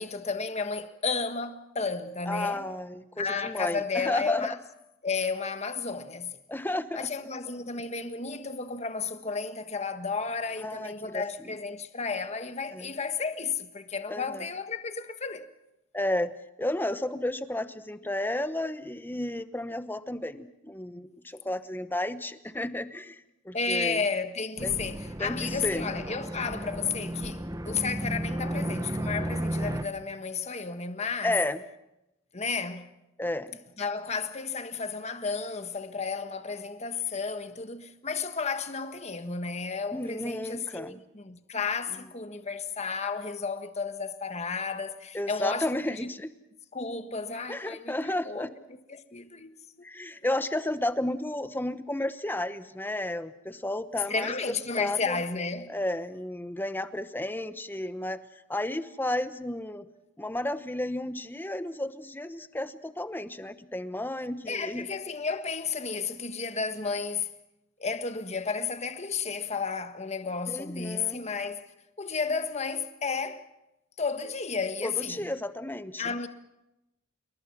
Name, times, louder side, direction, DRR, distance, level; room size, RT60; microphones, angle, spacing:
voice 1, 0.0-2.6 3.2-4.6 5.0-6.4 6.9-15.4 23.5-31.4 32.3-32.9 33.8-46.1 46.7-49.5 54.1-55.7 64.5-67.3 67.8-71.6 72.0-73.4 74.0-75.3 76.0-76.3, left 5 dB, 35° left, 1.5 m, -32 dB
voice 2, 2.3-4.6 6.5-7.1 10.6-11.5 12.7-12.9 14.1-14.4 15.9-16.3 16.6-24.0 24.6-24.8 25.2-25.9 31.2-31.6 33.2-33.6 39.9-41.0 45.1-46.3 47.5-48.5 49.8-54.3 54.8-55.2 55.7-58.2 58.5-59.9 60.2-64.9 70.5-71.2 74.8-76.1, left 1 dB, 10° left, 1.0 m, -32 dB
sound 1, 24.6-29.8, right 1 dB, 20° right, 1.2 m, -33 dB
27.5 x 22.0 x 6.1 m
head